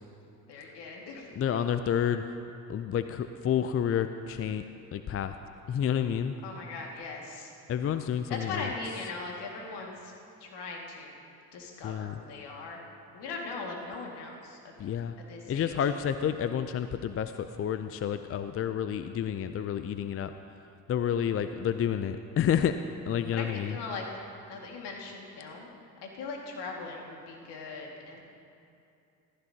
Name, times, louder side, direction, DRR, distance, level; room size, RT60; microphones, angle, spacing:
voice 1, 0.5-1.3 6.4-7.5 8.3-10.1 10.4-11.2 11.5-12.8 13.1-14.7 15.3-15.7 23.3-24.1 24.5-25.7 26.0-28.2, left 4 dB, 65° left, 0 dB, 2.1 m, -39 dB
voice 2, 1.4-2.4 2.7-4.6 4.9-5.4 5.7-6.4 7.7-8.7 11.8-12.1 14.8-15.1 15.5-20.3 20.9-22.7 23.1-23.7, left 9 dB, 35° left, 9 dB, 0.5 m, -29 dB
14.5 x 14.5 x 2.8 m, 2.6 s
hypercardioid pair, 60°, 43 cm